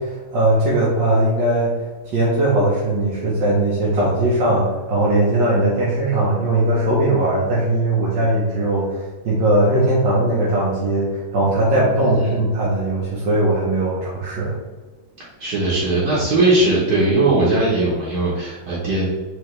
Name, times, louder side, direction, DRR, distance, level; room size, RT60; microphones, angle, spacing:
voice 1, 0.0-1.8 2.0-14.5, right 1 dB, 80° right, -7 dB, 1.6 m, -19 dB
voice 2, 12.0-12.4 15.4-19.1, right 2 dB, 60° right, -7 dB, 1.5 m, -19 dB
4.8 x 3.4 x 3.2 m, 1.2 s
omnidirectional pair, 1.9 m